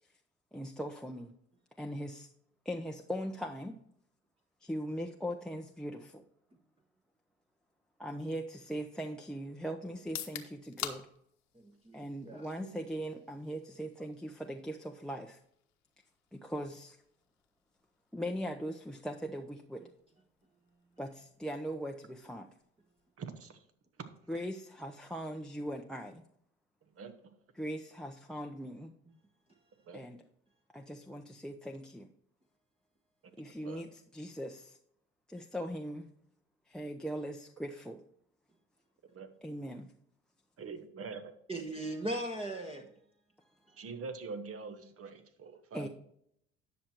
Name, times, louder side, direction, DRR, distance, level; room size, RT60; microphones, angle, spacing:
voice 1, 0.5-1.3 1.8-2.3 2.6-3.8 4.6-6.2 8.0-11.1 11.9-15.4 16.3-17.0 18.1-19.8 21.0-22.5 24.3-26.2 27.6-28.9 29.9-30.2 30.7-32.1 33.4-34.8 35.3-36.1 36.7-38.0 39.4-39.9 45.7-45.9, equal, ahead, 0.8 m, -40 dB
sound 1, 10.0-23.8, left 10 dB, 60° left, 1.2 m, -51 dB
voice 2, 11.9-12.4 41.5-42.9, right 1 dB, 20° right, 1.3 m, -38 dB
voice 3, 23.2-23.6 26.9-27.3 29.9-30.0 33.2-33.8 39.1-39.3 40.6-41.3 43.8-45.9, right 4 dB, 45° right, 1.4 m, -45 dB
10.0 x 6.4 x 4.4 m
hypercardioid pair, 60°, 31 cm